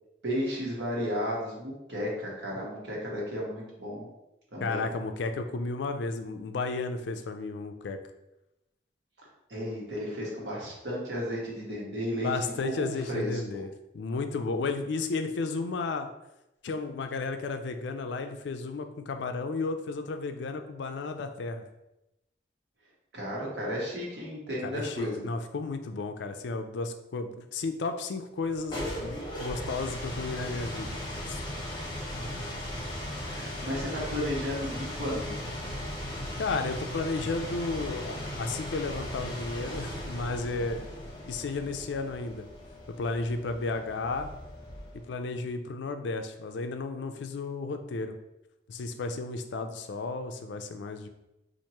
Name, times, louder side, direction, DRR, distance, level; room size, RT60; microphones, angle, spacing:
voice 1, 0.2-4.1 4.5-4.9 9.5-13.6 23.1-25.2 33.2-35.4, equal, 75° right, -4 dB, 1.3 m, -34 dB
voice 2, 4.6-8.0 12.2-13.7 13.9-16.1 16.6-21.6 24.6-31.0 31.3-31.4 36.4-40.9 41.3-42.4 42.9-44.3 44.9-48.2 48.7-51.1, left 3 dB, 75° left, 7 dB, 0.4 m, -33 dB
sound 1, 28.4-45.1, left 1 dB, 25° left, 0.8 m, -37 dB
4.5 x 2.5 x 2.9 m, 0.92 s
head